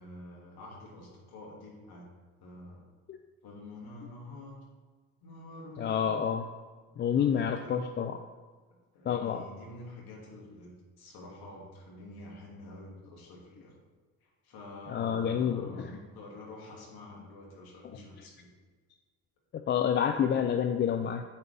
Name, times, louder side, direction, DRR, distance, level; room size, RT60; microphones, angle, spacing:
voice 1, 0.0-2.1 2.4-2.8 3.4-4.6 5.2-6.4 7.1-7.9 8.7-13.7 14.2-18.5, left 1 dB, 55° left, -2 dB, 2.6 m, -48 dB
voice 2, 5.8-6.4 7.0-8.2 9.1-9.4 14.9-15.9 19.5-21.2, left 8 dB, 25° left, 7 dB, 0.4 m, -28 dB
8.2 x 7.0 x 3.4 m, 1.4 s
hypercardioid pair, 60°, 44 cm